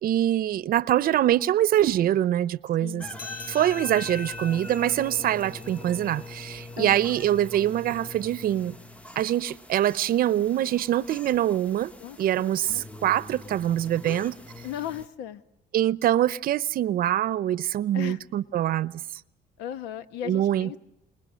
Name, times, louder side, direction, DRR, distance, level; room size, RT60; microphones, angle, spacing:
voice 1, 0.0-3.0 3.5-8.8 9.2-11.9 12.2-14.3 15.7-19.0 20.2-20.8, right 12 dB, 60° right, 0.8 m, -24 dB
sound 1, 3.0-15.1, left 2 dB, 5° left, 0.9 m, -42 dB
sound 2, 3.2-8.0, left 4 dB, 55° left, 6.0 m, -46 dB
voice 2, 14.6-15.4 17.9-18.2 19.6-20.8, left 10 dB, 90° left, 1.2 m, -36 dB
28.0 x 21.0 x 6.4 m
cardioid pair, 110°, 17 cm